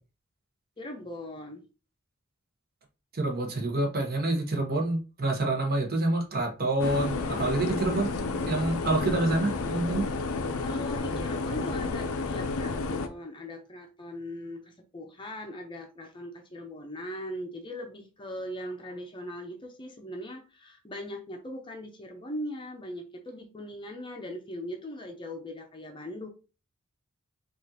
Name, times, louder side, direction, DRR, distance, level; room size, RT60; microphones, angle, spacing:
voice 1, 0.8-1.6 10.6-26.3, left 1 dB, 25° left, 3 dB, 0.6 m, -40 dB
voice 2, 3.1-8.1 8.5-10.1, right 2 dB, 45° right, 1 dB, 1.0 m, -27 dB
sound 1, 6.8-13.1, left 3 dB, 80° left, 0.5 m, -31 dB
5.1 x 2.5 x 2.7 m, 0.33 s
head